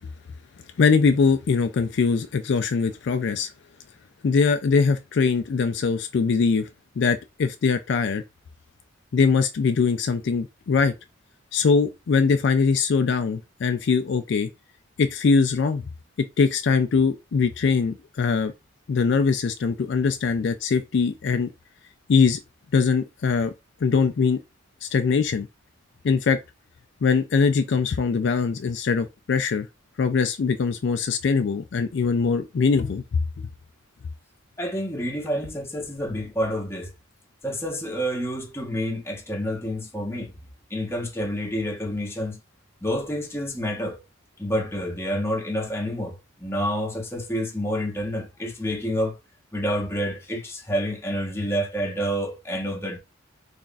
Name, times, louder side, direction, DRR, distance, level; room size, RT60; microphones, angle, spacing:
voice 1, 0.8-3.5 4.2-6.7 7.0-8.2 9.1-10.9 11.5-14.5 15.0-15.8 16.4-18.5 18.9-21.5 22.1-22.4 22.7-23.5 23.8-24.4 24.8-25.5 26.0-26.4 27.0-29.7 30.0-33.2, left 5 dB, 55° left, 0.3 m, -22 dB
voice 2, 34.6-36.9 37.4-40.3 40.7-42.4 42.8-44.0 44.4-49.2 49.5-53.0, equal, 10° left, 0.9 m, -28 dB
3.4 x 2.4 x 3.9 m
head